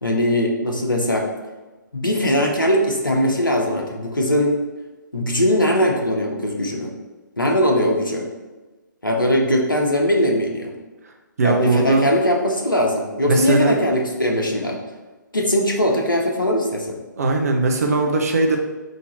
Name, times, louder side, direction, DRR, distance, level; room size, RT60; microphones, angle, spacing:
voice 1, 0.0-1.3 1.9-4.5 5.1-6.9 7.4-8.3 9.0-10.7 11.4-14.8 15.3-17.0, equal, 85° left, 1 dB, 0.9 m, -20 dB
voice 2, 11.4-12.1 13.3-13.8 17.2-18.6, right 3 dB, 50° right, 3 dB, 0.7 m, -19 dB
3.8 x 2.8 x 4.2 m, 1.2 s
figure-of-eight pair, 135°, 11 cm